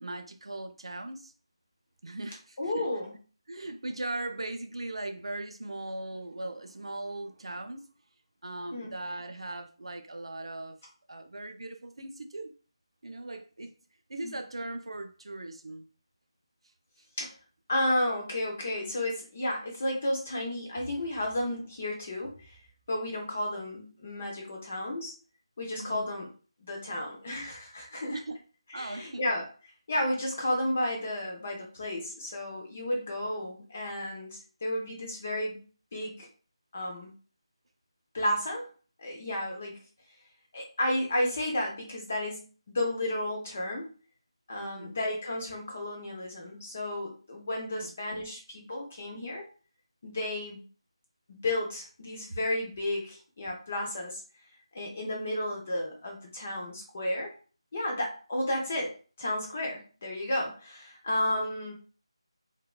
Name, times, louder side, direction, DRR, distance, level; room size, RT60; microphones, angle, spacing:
voice 1, 0.0-1.3 2.0-2.9 3.5-7.9 8.4-10.8 11.1-12.5 13.0-13.7 14.1-15.9 17.0-17.1 25.8-26.1 28.1-28.4 28.7-29.2 44.6-45.0 47.7-47.9, right 2 dB, 70° right, 0.4 m, -39 dB
voice 2, 2.6-3.1 8.7-8.9 14.2-14.4 17.2-17.3 17.7-22.6 22.9-25.1 25.6-26.3 26.6-28.2 28.7-29.4 29.9-35.7 35.9-36.3 36.7-37.1 38.1-38.7 39.0-39.8 40.5-43.9 44.5-49.4 50.0-50.6 51.3-54.2 54.7-57.3 57.7-61.7, left 1 dB, 15° left, 0.3 m, -32 dB
2.8 x 2.1 x 2.3 m
figure-of-eight pair, 180°, 3 cm